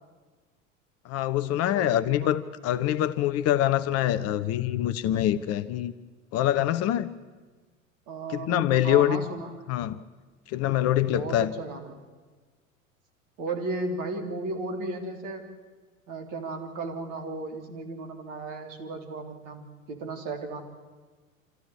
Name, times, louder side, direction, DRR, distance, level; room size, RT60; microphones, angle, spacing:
voice 1, 1.0-5.9 6.3-7.1 8.3-9.2 9.7-10.0 10.5-11.5, left 12 dB, 35° left, 13 dB, 0.8 m, -25 dB
voice 2, 1.7-2.3 8.1-9.5 11.1-12.0 13.4-15.5 16.1-20.6, right 3 dB, 50° right, 4 dB, 3.4 m, -35 dB
26.0 x 14.5 x 8.5 m, 1.4 s
figure-of-eight pair, 80°, 40 cm